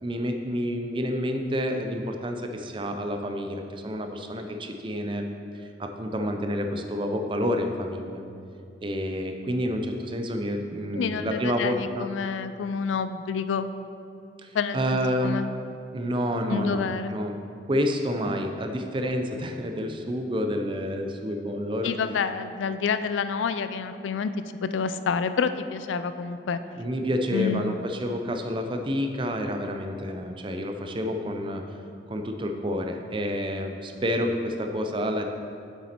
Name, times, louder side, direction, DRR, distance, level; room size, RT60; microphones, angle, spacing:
voice 1, 0.0-5.3 5.8-8.2 8.8-12.1 14.4-15.3 15.9-17.4 17.7-21.9 26.8-31.6 32.1-35.3, equal, 25° right, 5 dB, 0.5 m, -29 dB
voice 2, 10.9-13.7 14.5-15.5 16.5-17.1 21.8-24.3 24.6-26.6 27.3-27.7, left 5 dB, 85° left, 11 dB, 0.4 m, -28 dB
7.2 x 6.9 x 4.4 m, 2.5 s
head